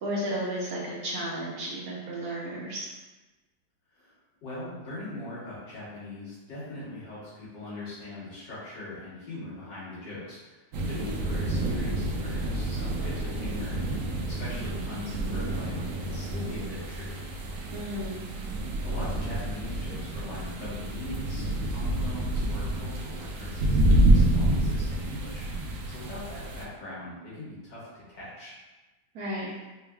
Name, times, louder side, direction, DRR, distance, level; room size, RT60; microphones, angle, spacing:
voice 1, 0.0-2.9 17.7-18.2 29.1-29.5, right 1 dB, 65° right, -4 dB, 1.0 m, -33 dB
voice 2, 3.9-10.6 10.9-17.3 18.3-18.4 18.8-28.6, left 2 dB, 80° left, -10 dB, 2.2 m, -41 dB
sound 1, 10.7-26.6, right 1 dB, 85° right, 0.7 m, -28 dB
4.3 x 3.3 x 2.3 m, 1.1 s
omnidirectional pair, 2.0 m